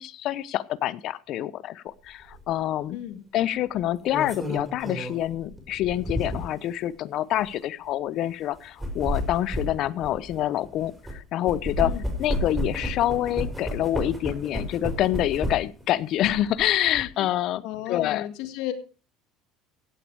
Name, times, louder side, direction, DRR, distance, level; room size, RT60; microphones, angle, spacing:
voice 1, 0.0-3.0 3.3-11.9 12.2-18.3, left 13 dB, 55° left, 18 dB, 0.8 m, -27 dB
sound 1, 2.3-2.5 3.8-6.6 7.3-7.5 8.6-11.2 11.5-15.8 16.2-17.0, equal, 5° right, 5.3 m, -32 dB
voice 2, 2.9-3.3 11.8-12.0 17.2-17.3 17.6-18.7, left 13 dB, 75° left, 8 dB, 1.9 m, -34 dB
16.0 x 8.6 x 4.8 m, 0.35 s
cardioid pair, 125°, 0 cm